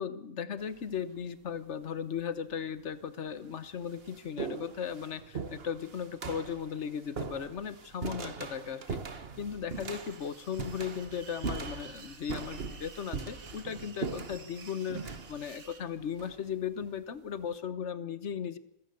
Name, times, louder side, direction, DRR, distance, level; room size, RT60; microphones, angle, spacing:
voice 1, 0.0-18.6, left 7 dB, 55° left, 14 dB, 1.3 m, -37 dB
sound 1, 0.6-1.0 2.0-2.1 2.9-3.0 3.4-16.9, right 5 dB, 45° right, 1.4 m, -41 dB
sound 2, 9.7-15.8, right 5 dB, 70° right, 2.1 m, -52 dB
26.5 x 16.0 x 6.9 m, 0.77 s
omnidirectional pair, 1.5 m